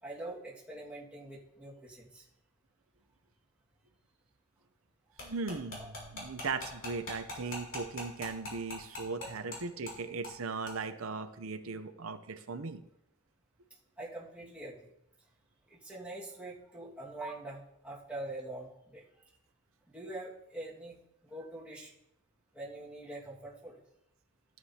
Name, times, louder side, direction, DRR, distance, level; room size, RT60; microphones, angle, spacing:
voice 1, 0.0-2.3 5.1-5.2 5.8-5.9 9.1-9.4 14.0-14.9 15.7-19.2 19.9-21.0 21.2-21.9 22.5-23.8, right 2 dB, 5° right, -6 dB, 1.8 m, -44 dB
sound 1, 5.2-9.6 9.9-10.0 10.2-10.4 10.7-10.8, left 2 dB, 55° left, 3.9 m, -41 dB
voice 2, 5.2-12.8, right 4 dB, 75° right, 10 dB, 0.7 m, -38 dB
12.5 x 9.0 x 2.9 m, 0.82 s
head